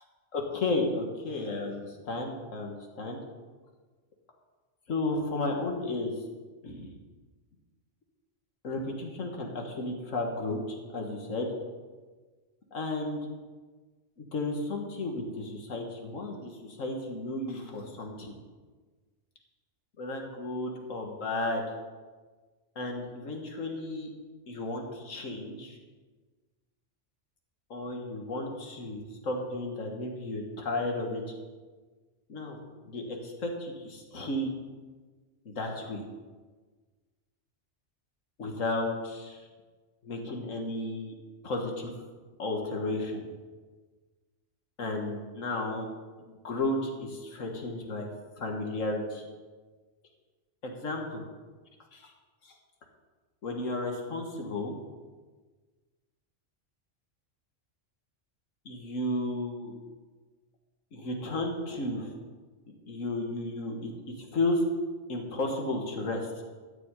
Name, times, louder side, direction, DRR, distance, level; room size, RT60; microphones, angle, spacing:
voice 1, 0.3-3.2 4.9-6.1 6.6-6.9 8.6-11.5 12.7-13.2 14.2-18.4 20.0-21.8 22.8-24.1 24.5-25.8 27.7-31.2 32.3-32.6 32.9-34.5 35.5-36.0 38.4-39.5 40.0-41.1 41.4-41.9 42.4-43.2 44.8-45.9 46.4-48.1 48.4-49.3 50.6-51.2 51.9-52.1 52.4-52.5 53.4-54.8 58.7-59.7 60.9-62.2 62.9-64.7 65.1-66.4, left 2 dB, 90° left, 1 dB, 2.0 m, -33 dB
13.0 x 6.1 x 9.0 m, 1.4 s
omnidirectional pair, 1.3 m